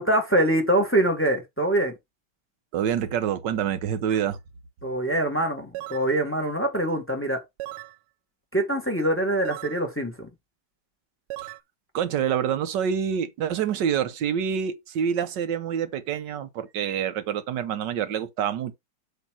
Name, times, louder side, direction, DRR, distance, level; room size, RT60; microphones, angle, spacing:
voice 1, 0.0-1.9 4.8-7.4 8.5-10.3, right 1 dB, 5° left, 1.3 m, -24 dB
voice 2, 2.7-4.4 11.9-18.8, right 8 dB, 60° right, 1.4 m, -27 dB
sound 1, 4.1-4.3 5.7-6.1 7.6-8.0 9.5-9.8 11.3-11.6, right 17 dB, 85° right, 1.5 m, -37 dB
8.2 x 2.9 x 6.2 m
omnidirectional pair, 2.4 m